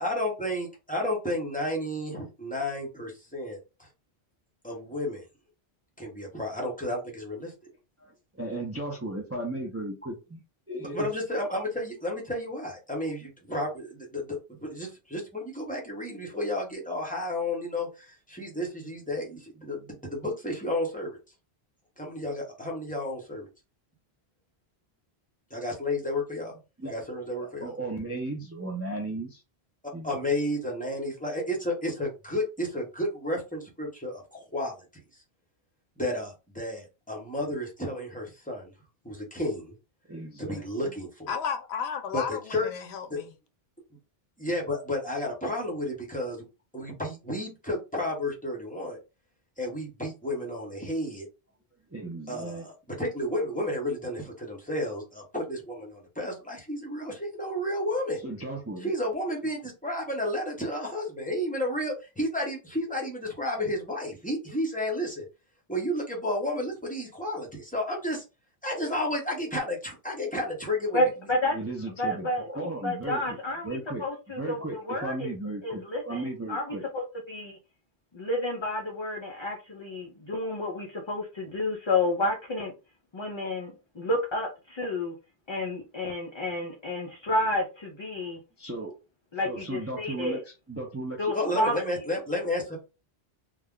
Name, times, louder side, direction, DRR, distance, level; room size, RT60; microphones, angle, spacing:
voice 1, 0.0-3.6 4.6-5.2 6.0-7.5 10.9-21.2 22.0-23.5 25.5-26.6 26.9-27.7 30.0-35.0 36.0-38.7 39.0-39.7 40.4-41.3 42.1-42.7 43.1-43.2 44.4-46.4 46.7-49.0 49.6-51.3 52.3-58.2 58.8-65.2 65.7-68.2 68.6-71.0 91.3-92.8, left 1 dB, 10° left, 0.8 m, -32 dB
voice 2, 8.0-10.4 10.7-11.1 26.8-26.9 27.4-29.4 29.9-30.1 40.1-40.6 51.9-52.7 58.2-59.0 71.5-73.4 73.6-74.0 74.4-76.8 88.6-88.9 89.4-91.3, right 2 dB, 20° right, 0.4 m, -35 dB
voice 3, 41.3-43.3, left 6 dB, 80° left, 0.8 m, -33 dB
voice 4, 70.9-71.5 72.0-72.4 72.8-75.3 75.6-77.6 78.1-82.7 83.1-85.2 85.5-88.4 89.3-90.4 91.2-91.8, left 1 dB, 40° left, 0.4 m, -30 dB
2.4 x 2.1 x 3.6 m
omnidirectional pair, 1.1 m